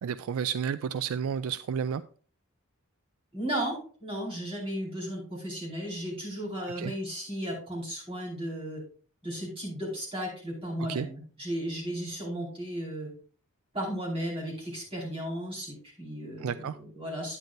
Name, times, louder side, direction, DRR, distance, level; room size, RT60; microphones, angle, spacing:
voice 1, 0.0-2.0 6.8-6.9 10.9-11.1 16.4-16.8, right 7 dB, 70° right, 0.3 m, -31 dB
voice 2, 3.3-8.8 9.2-13.1 13.7-17.4, equal, 25° right, 4.8 m, -35 dB
10.5 x 9.1 x 2.6 m
head